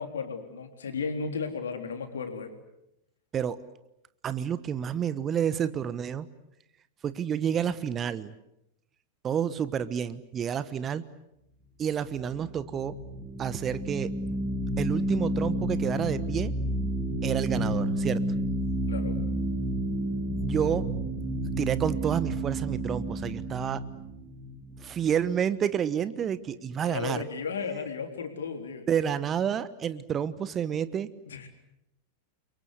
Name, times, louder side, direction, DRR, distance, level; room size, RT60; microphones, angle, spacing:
voice 1, 0.0-2.5 18.9-19.1 26.9-28.9 31.3-31.5, left 5 dB, 65° left, 6 dB, 3.8 m, -34 dB
voice 2, 4.2-6.2 7.0-8.3 9.2-11.0 11.8-13.0 13.4-14.1 14.8-16.5 17.2-18.2 20.4-20.9 21.4-23.8 24.8-27.2 28.9-31.1, right 8 dB, 25° right, 15 dB, 1.2 m, -29 dB
sound 1, 12.5-25.4, right 1 dB, 10° right, 2.8 m, -31 dB
30.0 x 23.5 x 8.1 m, 0.83 s
figure-of-eight pair, 90°, 0 cm